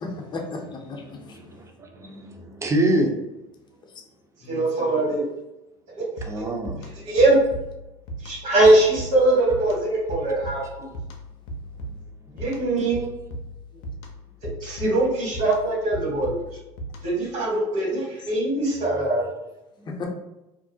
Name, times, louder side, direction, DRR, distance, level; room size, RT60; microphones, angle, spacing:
voice 1, 0.0-1.2 4.4-5.0 19.9-20.1, left 3 dB, 35° left, 1 dB, 0.6 m, -35 dB
voice 2, 0.9-3.1 6.3-6.9 12.2-12.4 19.8-20.0, right 1 dB, 20° right, 2 dB, 0.5 m, -27 dB
voice 3, 4.5-5.2 5.9-6.5 6.8-7.4 8.2-10.9 12.3-13.0 14.6-16.4 17.0-19.3, right 2 dB, 60° right, -4 dB, 1.5 m, -22 dB
sound 1, 6.2-17.3, right 1 dB, 75° left, 0.5 m, -38 dB
2.5 x 2.0 x 2.6 m, 0.96 s
supercardioid pair, 95°, 14 cm